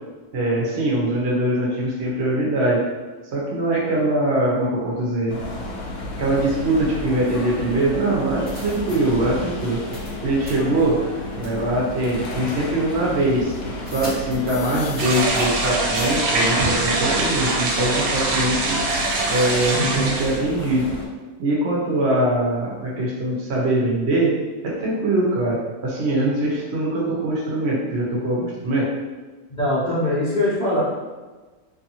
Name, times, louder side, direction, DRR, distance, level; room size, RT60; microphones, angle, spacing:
voice 1, 0.3-2.8 3.3-5.4 6.2-9.8 10.2-11.0 11.4-13.5 13.9-18.8 19.3-20.9 21.4-24.3 24.6-28.9, right 1 dB, 60° right, -4 dB, 0.8 m, -22 dB
sound 1, 5.3-21.1, left 2 dB, 85° left, 1.1 m, -32 dB
sound 2, 7.8-7.9 8.5-9.0 9.9-10.1 10.4-10.5 11.4-11.6 12.3-12.4 13.8-15.7 15.9-16.1, left 3 dB, 10° right, 0.4 m, -36 dB
sound 3, 15.0-20.4, right 2 dB, 75° right, 1.0 m, -23 dB
voice 2, 19.7-20.1 29.5-30.8, left 1 dB, 50° left, -10 dB, 0.5 m, -22 dB
2.6 x 2.5 x 2.7 m, 1.3 s
omnidirectional pair, 1.6 m